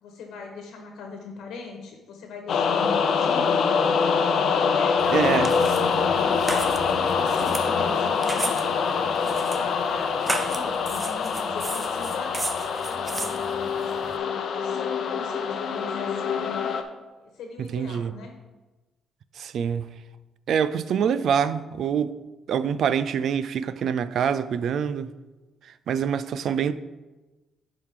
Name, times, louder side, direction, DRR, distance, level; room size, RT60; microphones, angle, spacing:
voice 1, 0.0-3.7 4.5-12.5 12.8-13.7 14.2-16.7 17.2-18.4, left 4 dB, 75° left, 1.3 m, -39 dB
sound 1, 2.5-16.8, left 6 dB, 60° left, 0.7 m, -25 dB
sound 2, 5.0-14.2, right 2 dB, 20° right, 0.6 m, -35 dB
voice 2, 5.1-5.5 17.6-18.1 19.4-19.9 20.5-22.2 22.5-25.1 25.6-26.7, right 7 dB, 65° right, 0.4 m, -25 dB
10.5 x 4.8 x 3.8 m
cardioid pair, 105°, 0 cm